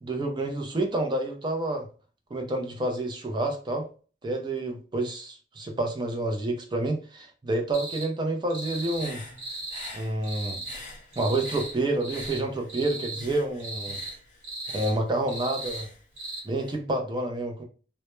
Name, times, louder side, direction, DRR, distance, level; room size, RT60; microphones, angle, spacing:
voice 1, 0.0-1.9 2.3-3.8 4.2-9.4 9.9-10.6 11.2-14.0 14.7-15.9 16.4-17.6, right 2 dB, 25° right, 3 dB, 0.4 m, -29 dB
sound 1, 7.7-8.1 8.5-9.1 9.4-9.9 10.2-10.8 11.1-11.7 12.0-12.4 12.7-13.2 13.6-14.1 14.4-14.9 15.3-15.8 16.2-16.4, right 2 dB, 85° right, 0.9 m, -37 dB
Human voice / Breathing, 8.6-12.8 13.1-16.8, left 2 dB, 40° left, 0.8 m, -47 dB
2.1 x 2.1 x 3.0 m, 0.37 s
head